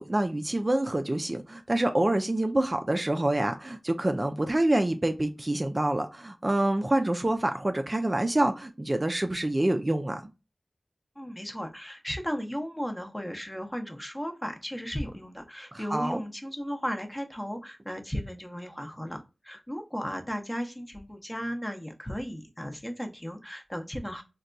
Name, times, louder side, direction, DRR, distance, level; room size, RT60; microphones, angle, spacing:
voice 1, 0.0-10.2 15.7-16.2, right 1 dB, 30° right, 0.4 m, -27 dB
voice 2, 11.2-24.2, equal, 15° left, 0.6 m, -35 dB
4.0 x 2.2 x 2.4 m
wide cardioid pair, 65°, 0 cm